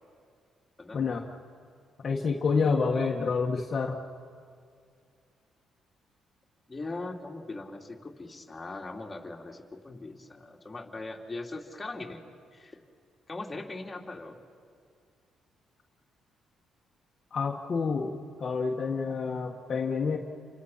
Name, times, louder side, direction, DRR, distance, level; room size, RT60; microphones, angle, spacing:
voice 1, 2.0-4.0 17.3-20.2, left 5 dB, 45° left, 0 dB, 1.7 m, -28 dB
voice 2, 6.7-12.2 12.5-12.8 13.3-14.4, left 2 dB, 20° left, -1 dB, 3.2 m, -40 dB
29.5 x 25.5 x 5.9 m, 2.2 s
cardioid pair, 90°, 0 cm